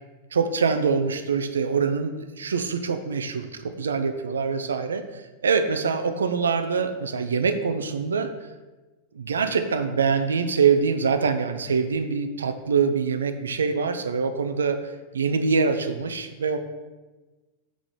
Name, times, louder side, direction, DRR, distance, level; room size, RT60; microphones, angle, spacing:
voice 1, 0.3-3.5 3.8-5.0 5.4-8.3 9.1-14.8 15.1-16.6, right 5 dB, 70° right, 9 dB, 0.6 m, -24 dB
6.0 x 4.8 x 5.3 m, 1.2 s
figure-of-eight pair, 90°, 0 cm